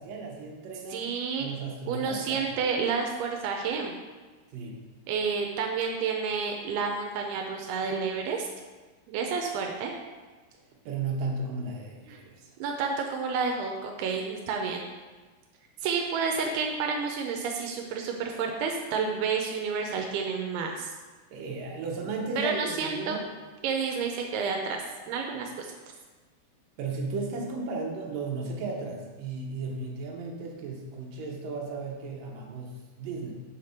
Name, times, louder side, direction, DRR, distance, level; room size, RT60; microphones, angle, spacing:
voice 1, 0.0-1.1 1.4-2.4 4.5-4.8 10.9-12.5 21.3-23.2 25.3-25.5 26.8-33.3, right 3 dB, 70° right, -1 dB, 2.6 m, -35 dB
voice 2, 0.9-1.5 1.9-3.9 5.1-8.5 9.1-9.9 12.1-12.2 12.6-14.9 15.8-20.9 22.4-23.2 23.6-25.7, right 5 dB, 85° right, 2 dB, 2.7 m, -30 dB
6.3 x 5.0 x 5.8 m, 1.3 s
omnidirectional pair, 4.4 m